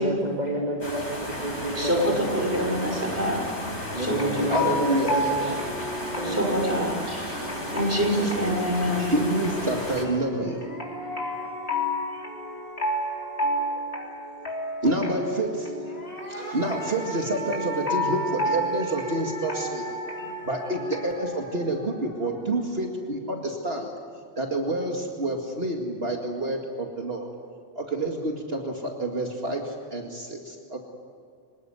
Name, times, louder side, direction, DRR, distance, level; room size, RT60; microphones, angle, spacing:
voice 1, 0.0-2.2 3.9-6.5 7.1-7.5, right 1 dB, 40° right, -1 dB, 2.7 m, -30 dB
sound 1, 0.8-10.0, equal, 90° left, 5.6 m, -34 dB
voice 2, 1.7-4.3 4.6-4.8 6.2-7.1 7.7-9.1, equal, 15° right, 0 dB, 5.5 m, -26 dB
sound 2, 3.6-21.2, left 1 dB, 65° left, 3.9 m, -32 dB
voice 3, 4.5-5.1 9.0-10.7 14.3-19.9 20.4-23.9 24.4-27.3 27.8-30.8, right 1 dB, 60° right, 1 dB, 2.4 m, -28 dB
sound 3, 10.4-14.1 15.7-23.0, right 2 dB, 35° left, 4.9 m, -38 dB
26.0 x 19.0 x 9.5 m, 2.5 s
omnidirectional pair, 1.2 m